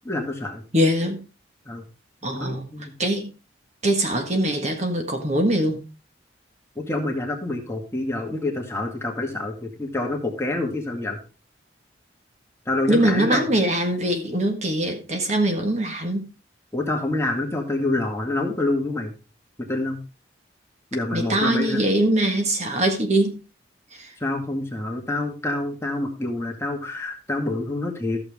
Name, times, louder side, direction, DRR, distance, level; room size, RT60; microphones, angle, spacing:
voice 1, 0.0-0.6 1.7-1.8 2.3-3.0 6.8-11.2 12.7-13.5 16.7-19.1 19.6-20.0 20.9-21.8 24.2-28.2, left 2 dB, 15° left, 2.0 m, -27 dB
voice 2, 0.7-1.2 2.2-2.7 3.0-3.3 3.8-5.9 12.9-16.3 21.1-23.4 23.9-24.1, right 1 dB, 35° right, 1.6 m, -22 dB
14.0 x 7.0 x 3.6 m
head